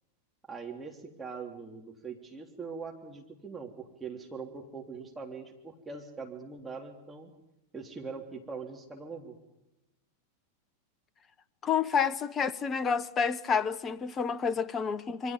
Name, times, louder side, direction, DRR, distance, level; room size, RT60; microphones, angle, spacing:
voice 1, 0.5-7.3 7.7-9.4, right 5 dB, 10° right, 3.6 m, -42 dB
voice 2, 11.6-15.3, left 6 dB, 25° left, 1.1 m, -29 dB
27.5 x 24.0 x 5.3 m
figure-of-eight pair, 90°, 0 cm